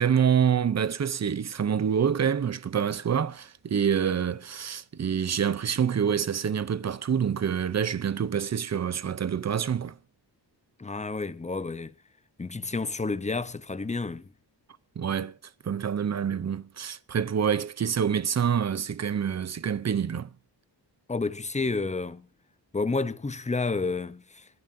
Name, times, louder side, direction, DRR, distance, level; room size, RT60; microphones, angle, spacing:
voice 1, 0.0-9.9 15.0-15.3 15.6-20.3, right 7 dB, 40° right, 0.7 m, -26 dB
voice 2, 10.8-11.9 12.4-14.3 21.1-22.3 22.7-24.5, left 3 dB, 15° left, 0.7 m, -30 dB
27.0 x 11.0 x 2.7 m
wide cardioid pair, 160°, 44 cm